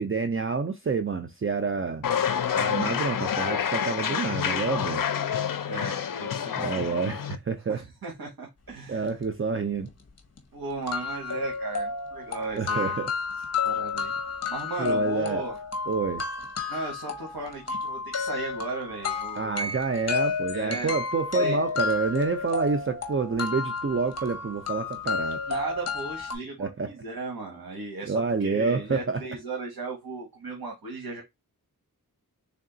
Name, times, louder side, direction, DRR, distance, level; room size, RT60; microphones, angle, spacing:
voice 1, 0.0-2.1 2.5-5.0 6.6-7.8 8.9-9.9 12.5-13.1 14.8-15.4 15.9-16.2 19.3-25.4 26.6-26.9 28.1-29.2, right 4 dB, 35° right, 0.5 m, -28 dB
sound 1, 2.0-7.4, left 8 dB, 60° left, 0.5 m, -28 dB
voice 2, 5.7-7.0 7.7-9.2 10.5-13.0 13.6-14.1 14.5-15.6 16.7-19.7 20.5-21.0 21.4-21.6 25.5-28.1 28.4-31.2, right 3 dB, 75° right, 1.3 m, -36 dB
sound 2, 9.9-10.0 10.4-10.5 10.9-26.4, left 5 dB, 45° left, 0.9 m, -31 dB
3.5 x 2.4 x 3.8 m
wide cardioid pair, 75°, 37 cm